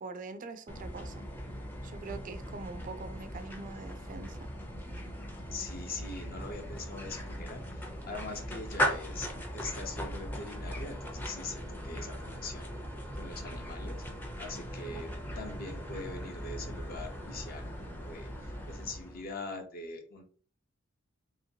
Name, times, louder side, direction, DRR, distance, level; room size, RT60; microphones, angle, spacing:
voice 1, 0.0-1.2 1.8-4.4, right 3 dB, 40° right, 0.4 m, -43 dB
sound 1, 0.7-19.3, equal, 10° left, 0.5 m, -39 dB
voice 2, 5.5-12.7 13.1-14.0 14.4-15.1 15.4-20.2, left 3 dB, 45° left, 0.7 m, -42 dB
3.0 x 2.8 x 2.7 m
head